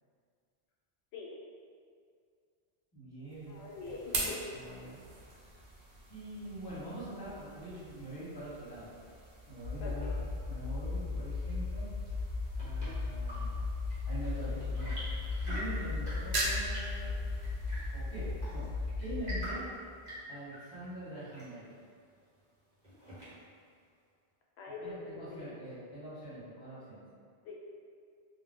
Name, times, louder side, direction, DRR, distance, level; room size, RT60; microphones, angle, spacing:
voice 1, 2.9-3.7 4.5-5.0 5.3-5.6 6.1-9.0 9.5-11.9 12.1-13.7 14.0-15.0 15.4-17.1 17.9-19.6 20.3-21.7 24.8-27.0, right 1 dB, 25° left, -11 dB, 1.0 m, -44 dB
sound 1, 3.3-20.2, right 2 dB, 80° right, 0.9 m, -43 dB
voice 2, 3.5-4.4 9.8-10.2 24.6-25.6 27.4-27.5, left 3 dB, 90° left, -2 dB, 0.9 m, -44 dB
sound 2, 9.6-19.5, left 3 dB, 60° left, 0.7 m, -36 dB
Chirp tweet / Engine / Tap, 12.1-23.7, equal, 45° right, 1.1 m, -47 dB
2.5 x 2.2 x 3.6 m, 2.2 s
omnidirectional pair, 1.1 m